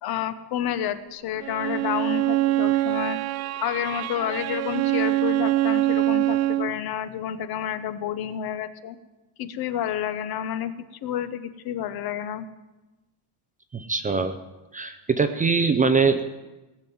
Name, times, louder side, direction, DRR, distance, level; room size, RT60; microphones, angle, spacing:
voice 1, 0.0-3.2 3.6-9.0 9.4-10.7 11.0-12.5, left 10 dB, 50° left, 12 dB, 0.9 m, -29 dB
Bowed string instrument, 1.4-6.8, right 15 dB, 75° right, 0.7 m, -24 dB
voice 2, 13.7-14.3 14.7-16.4, right 4 dB, 20° right, 9 dB, 0.5 m, -22 dB
18.0 x 7.2 x 9.3 m, 1.1 s
cardioid pair, 160°, 46 cm